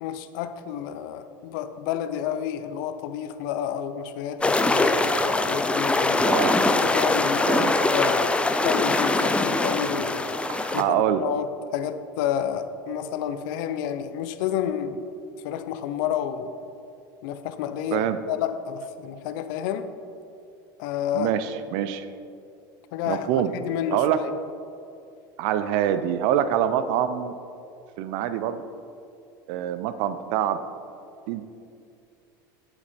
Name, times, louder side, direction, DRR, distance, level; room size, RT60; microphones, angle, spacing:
voice 1, 0.0-6.2 6.8-10.3 10.7-15.0 15.4-16.5 17.2-19.9 20.8-21.3 22.9-24.3, left 9 dB, 70° left, 10 dB, 0.6 m, -30 dB
sound 1, 4.4-10.8, left 2 dB, 10° left, 0.5 m, -22 dB
voice 2, 6.2-6.6 7.5-7.7 10.5-11.2 17.9-18.2 21.1-22.1 23.0-23.5 23.9-24.2 25.4-27.3 28.0-28.6 29.5-30.6 31.3-31.5, right 10 dB, 65° right, 11 dB, 0.6 m, -25 dB
7.9 x 7.2 x 4.4 m, 2.5 s
hypercardioid pair, 90°, 11 cm